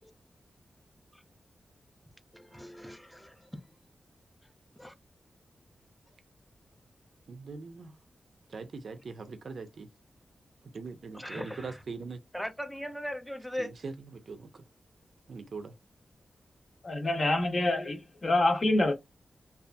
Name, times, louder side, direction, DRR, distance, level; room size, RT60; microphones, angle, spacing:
voice 1, 2.3-3.5 4.8-4.9 11.1-11.8 12.3-13.7, equal, ahead, 0.5 m, -39 dB
voice 2, 7.3-7.9 8.5-9.9 10.7-12.2 13.6-14.6 15.3-15.7, right 4 dB, 65° right, 0.5 m, -41 dB
voice 3, 16.8-18.9, left 2 dB, 45° left, 0.7 m, -26 dB
2.6 x 2.3 x 2.2 m
wide cardioid pair, 135°, 0 cm